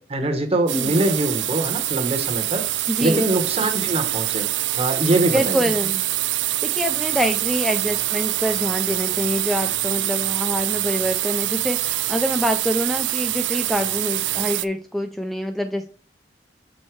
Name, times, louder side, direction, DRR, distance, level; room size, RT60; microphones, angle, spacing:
voice 1, 0.1-4.4 4.8-5.7, right 1 dB, 35° right, 5 dB, 1.1 m, -23 dB
sound 1, 0.7-14.6, right 16 dB, 90° right, 0.4 m, -25 dB
voice 2, 2.9-3.2 5.3-6.1 6.3-15.9, equal, ahead, 6 dB, 0.4 m, -25 dB
6.4 x 4.2 x 4.6 m, 0.40 s
head